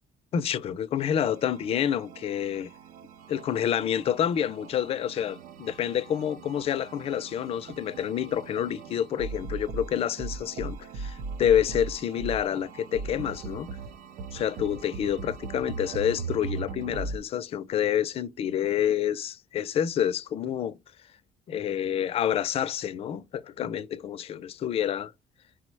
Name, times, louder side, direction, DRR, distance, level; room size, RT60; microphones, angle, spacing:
voice 1, 0.3-2.7 3.3-13.7 14.3-20.8 21.5-25.1, left 9 dB, 40° left, 0.4 m, -28 dB
sound 1, 1.2-17.2, right 4 dB, 70° right, 0.5 m, -39 dB
4.5 x 2.0 x 4.5 m
cardioid pair, 170°, 15 cm